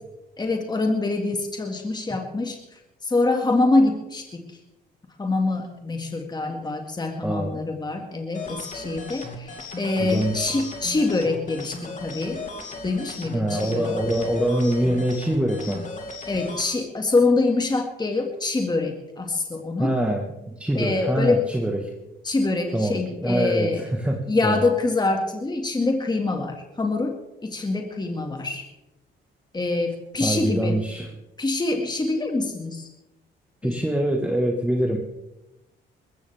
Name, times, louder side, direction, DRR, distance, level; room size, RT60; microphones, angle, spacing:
voice 1, 0.4-4.6 5.2-12.4 12.8-13.9 16.3-20.0 20.7-21.5 22.2-23.8 24.3-28.6 29.5-30.8 31.4-32.9 33.6-33.8, left 3 dB, 20° left, 3 dB, 2.0 m, -25 dB
voice 2, 7.2-7.6 10.0-10.5 13.3-15.8 19.8-20.3 20.6-21.9 22.7-24.6 30.2-31.1 33.6-35.0, right 1 dB, 5° right, 2 dB, 1.6 m, -24 dB
sound 1, 8.3-16.7, left 2 dB, 40° left, 2.9 m, -36 dB
21.0 x 15.5 x 3.5 m, 0.99 s
cardioid pair, 90°, 20 cm